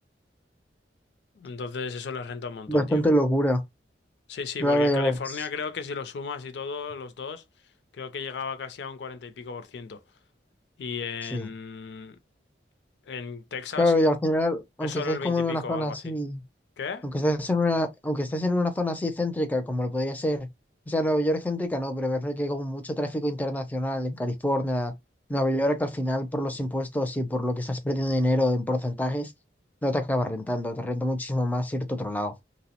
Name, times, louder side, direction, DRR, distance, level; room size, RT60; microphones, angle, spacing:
voice 1, 1.4-3.0 4.3-7.4 7.9-10.0 10.8-12.2 13.1-13.9 14.8-16.1 16.8-17.1, left 5 dB, 70° left, 0.4 m, -35 dB
voice 2, 2.7-3.6 4.6-5.4 11.3-11.5 13.8-16.4 17.0-20.5 20.9-24.9 25.3-29.3 29.8-32.3, left 1 dB, 10° left, 0.4 m, -26 dB
2.7 x 2.0 x 2.8 m
head